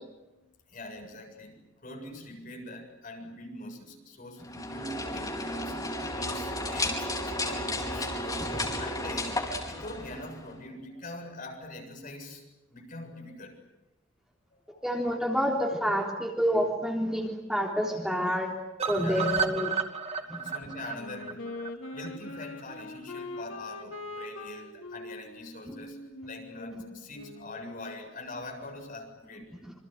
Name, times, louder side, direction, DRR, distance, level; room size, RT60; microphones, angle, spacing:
voice 1, 0.3-5.8 6.1-12.4 12.7-13.6 14.7-14.9 19.0-19.3 20.1-21.4 21.9-26.0 26.3-29.5, left 1 dB, 45° left, 3 dB, 7.5 m, -43 dB
sound 1, 4.4-10.6, left 1 dB, 20° left, 4.7 m, -33 dB
voice 2, 14.8-18.5 18.9-19.7 20.3-20.4, equal, 5° right, -1 dB, 3.6 m, -28 dB
sound 2, 18.8-22.8 23.2-23.3 23.5-23.6 23.9-24.0, right 6 dB, 30° right, 2.4 m, -33 dB
Wind instrument woodwind instrument, 20.9-27.6, left 2 dB, 75° left, 3.1 m, -42 dB
27.5 x 26.5 x 8.1 m, 1.0 s
head